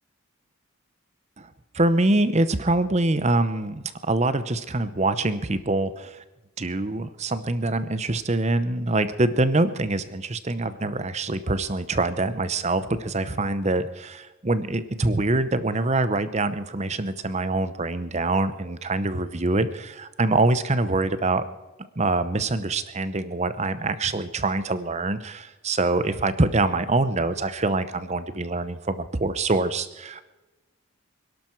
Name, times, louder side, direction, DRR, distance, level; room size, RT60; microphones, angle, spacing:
voice 1, 1.7-6.2 6.6-21.4 22.0-30.2, right 2 dB, 30° right, 13 dB, 0.8 m, -24 dB
26.0 x 12.0 x 4.6 m, 1.1 s
head